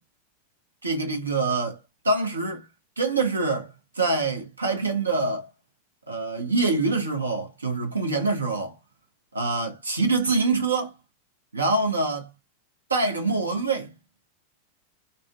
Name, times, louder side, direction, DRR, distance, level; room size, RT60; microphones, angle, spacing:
voice 1, 0.8-1.8 2.0-2.7 3.0-5.5 6.1-8.8 9.3-10.9 11.5-12.3 12.9-13.9, right 3 dB, 75° right, 0.9 m, -25 dB
3.9 x 2.1 x 2.4 m
figure-of-eight pair, 90°, 0 cm